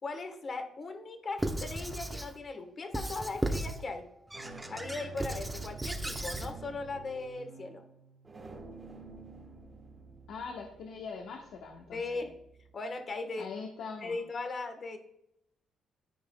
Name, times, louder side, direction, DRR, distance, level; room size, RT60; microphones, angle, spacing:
voice 1, 0.0-4.0 4.7-7.8 11.9-12.3 12.7-13.5 14.0-15.0, left 3 dB, 40° left, 6 dB, 1.4 m, -38 dB
Squeak / Writing, 1.4-2.3 2.9-3.8 4.3-6.5, right 1 dB, 10° right, 0.9 m, -35 dB
sound 1, 2.9-3.3 4.1-12.7, right 3 dB, 30° right, 1.8 m, -50 dB
voice 2, 10.3-12.2 13.4-14.2, left 5 dB, 75° left, 0 dB, 1.2 m, -42 dB
13.0 x 4.9 x 2.3 m, 0.80 s
cardioid pair, 90°, 0 cm